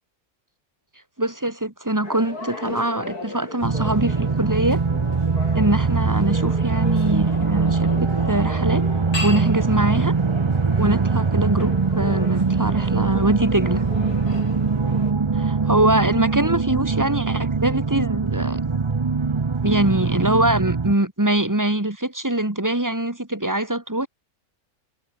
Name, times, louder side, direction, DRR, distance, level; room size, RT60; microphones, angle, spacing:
voice 1, 1.2-4.8 5.5-8.9 9.2-10.1 10.8-13.8 15.3-18.6 19.6-24.1, right 1 dB, 10° right, 2.3 m, -23 dB
sound 1, 2.0-15.1, left 3 dB, 90° left, 5.3 m, -36 dB
sound 2, 3.6-20.9, right 4 dB, 30° right, 0.5 m, -22 dB
omnidirectional pair, 1.6 m